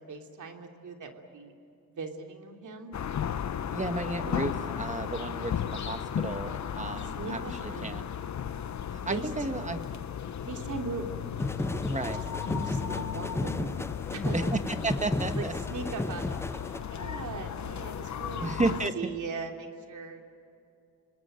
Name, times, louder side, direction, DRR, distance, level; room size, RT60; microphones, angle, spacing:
voice 1, 0.0-1.5 2.0-2.9 7.2-8.0 9.1-9.3 10.4-11.1 11.6-12.2 12.5-13.8 14.1-14.5 15.4-16.6 16.9-18.6 18.9-20.2, right 4 dB, 60° right, 3 dB, 3.0 m, -39 dB
sound 1, 2.9-18.9, left 8 dB, 55° left, 1.1 m, -35 dB
voice 2, 3.7-8.0 8.9-9.8 11.9-12.2 14.3-15.5 18.4-19.1, right 2 dB, 20° right, 8 dB, 1.7 m, -33 dB
sound 2, 11.4-16.8, left 2 dB, 10° left, 0.5 m, -33 dB
28.0 x 20.0 x 9.1 m, 2.5 s
cardioid pair, 70°, 33 cm